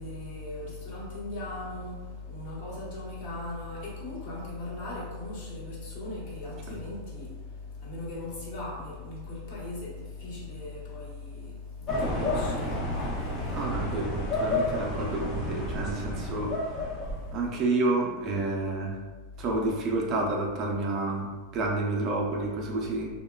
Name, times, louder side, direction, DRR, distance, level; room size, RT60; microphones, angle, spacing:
voice 1, 0.0-13.8 17.1-17.4, left 2 dB, 55° left, -6 dB, 0.9 m, -38 dB
sound 1, 11.9-17.4, left 1 dB, 30° left, 0.5 m, -30 dB
voice 2, 13.5-16.6 17.3-19.0 19.4-23.1, right 2 dB, 35° right, -1 dB, 0.4 m, -29 dB
2.9 x 2.1 x 2.3 m, 1.3 s
supercardioid pair, 150°, 0 cm